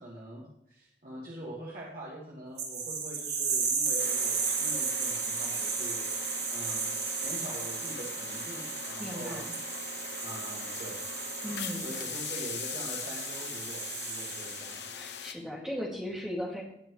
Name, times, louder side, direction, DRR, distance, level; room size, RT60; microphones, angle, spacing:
voice 1, 0.0-6.2 6.5-9.5 10.2-11.1 11.7-15.0, right 1 dB, 50° right, -5 dB, 2.0 m, -44 dB
sound 1, 2.6-14.9, right 5 dB, 75° right, 2.2 m, -34 dB
sound 2, 4.0-15.3, left 7 dB, 80° left, 0.8 m, -41 dB
voice 2, 9.0-9.5 11.4-11.9 15.0-16.6, equal, 5° right, -3 dB, 2.3 m, -37 dB
17.5 x 6.0 x 3.2 m, 0.78 s
head